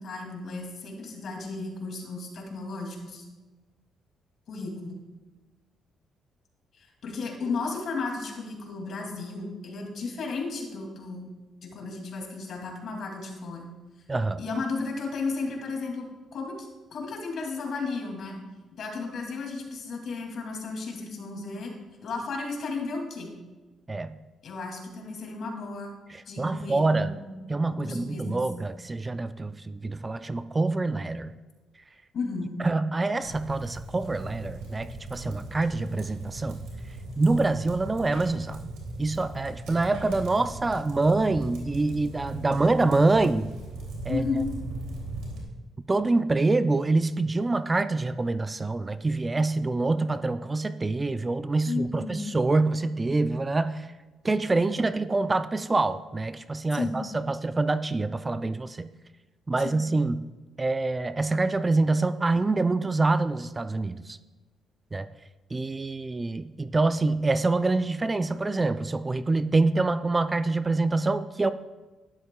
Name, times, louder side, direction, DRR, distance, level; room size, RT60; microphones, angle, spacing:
voice 1, 0.0-3.2 4.5-5.0 6.7-11.3 11.6-13.7 14.4-16.1 16.3-18.4 18.8-21.7 22.0-23.3 24.4-25.9 26.3-27.3 27.7-28.5 32.1-32.6 44.1-44.5 51.7-52.2 56.7-57.0 59.6-59.8, left 3 dB, 60° left, 1 dB, 2.4 m, -34 dB
voice 2, 14.1-14.4 23.9-24.2 26.1-27.1 27.5-31.4 32.6-36.6 37.2-38.6 39.0-43.5 44.1-44.2 45.9-53.9 54.2-58.9 59.5-60.2 60.6-64.2 64.9-65.1 65.5-71.5, right 3 dB, 25° right, 13 dB, 0.4 m, -26 dB
sound 1, 33.2-45.4, right 2 dB, 90° right, 2.6 m, -39 dB
12.5 x 11.0 x 2.3 m, 1.2 s
cardioid pair, 90°, 0 cm